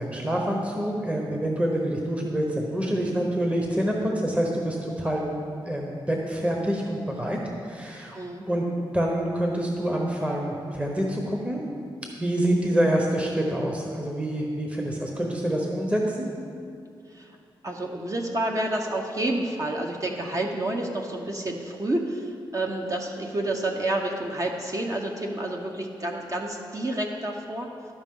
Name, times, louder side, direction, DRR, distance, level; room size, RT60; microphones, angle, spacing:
voice 1, 0.0-5.3 5.6-7.4 7.6-8.2 8.5-8.7 8.9-11.6 12.2-16.3, right 1 dB, 15° right, 0 dB, 1.0 m, -26 dB
voice 2, 17.6-27.7, right 1 dB, 35° right, 1 dB, 0.8 m, -29 dB
12.5 x 5.0 x 3.7 m, 2.4 s
cardioid pair, 75°, 9 cm